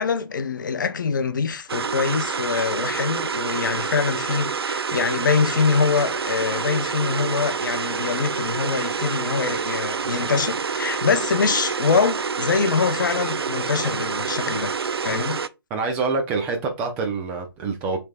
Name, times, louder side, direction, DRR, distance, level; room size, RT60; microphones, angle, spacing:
voice 1, 0.0-14.7 15.0-15.4, left 5 dB, 50° left, 0.6 m, -24 dB
sound 1, 1.7-15.5, right 5 dB, 75° right, 0.4 m, -27 dB
voice 2, 15.7-18.0, right 4 dB, 10° right, 0.5 m, -26 dB
6.4 x 3.4 x 2.3 m
figure-of-eight pair, 150°, 13 cm